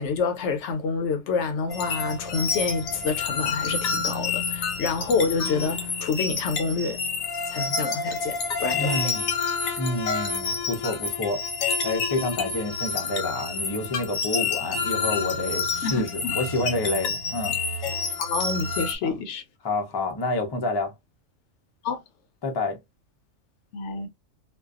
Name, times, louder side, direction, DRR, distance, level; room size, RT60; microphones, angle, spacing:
voice 1, 0.0-7.0 7.5-9.2 15.8-16.3 18.2-19.4 21.8-22.0 23.7-24.1, left 4 dB, 70° left, 0.8 m, -28 dB
sound 1, 1.7-19.0, left 4 dB, 85° left, 1.2 m, -29 dB
voice 2, 8.7-9.3 9.8-11.4 11.8-17.6 19.0-19.1 19.6-20.9 22.4-22.8, left 2 dB, 40° left, 0.3 m, -28 dB
2.5 x 2.2 x 2.3 m
omnidirectional pair, 1.4 m